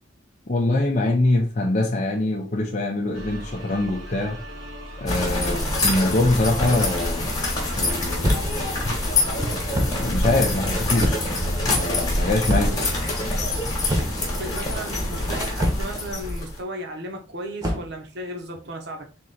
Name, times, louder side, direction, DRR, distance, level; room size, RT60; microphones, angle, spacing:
voice 1, 0.5-4.4 5.0-5.6 5.8-7.3 7.8-8.4 9.7-11.2 11.6-12.7, left 2 dB, 35° left, 0.6 m, -23 dB
sound 1, 3.1-9.2, equal, 75° right, 1.1 m, -38 dB
sound 2, 5.1-16.6, left 2 dB, 20° left, 1.2 m, -25 dB
sound 3, 8.2-8.6 9.7-10.1 11.0-11.4 12.5-12.9 13.9-14.3 15.6-16.0 17.6-17.9, equal, 20° right, 0.9 m, -25 dB
voice 2, 12.5-12.9 14.2-19.1, right 1 dB, 55° right, 0.9 m, -35 dB
3.7 x 2.9 x 4.1 m
head